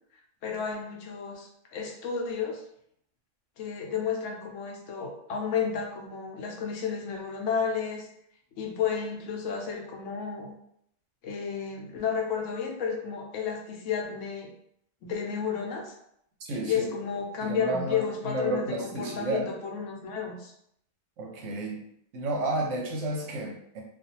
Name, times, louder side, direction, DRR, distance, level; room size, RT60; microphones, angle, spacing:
voice 1, 0.4-2.6 3.6-8.1 8.6-10.5 11.2-14.5 15.0-15.9 16.6-20.5, left 6 dB, 80° left, 0 dB, 1.0 m, -32 dB
voice 2, 16.4-16.9 17.4-19.5 21.2-21.8 22.1-23.8, right 2 dB, 90° right, 0 dB, 1.0 m, -31 dB
2.5 x 2.3 x 2.8 m, 0.71 s
omnidirectional pair, 1.3 m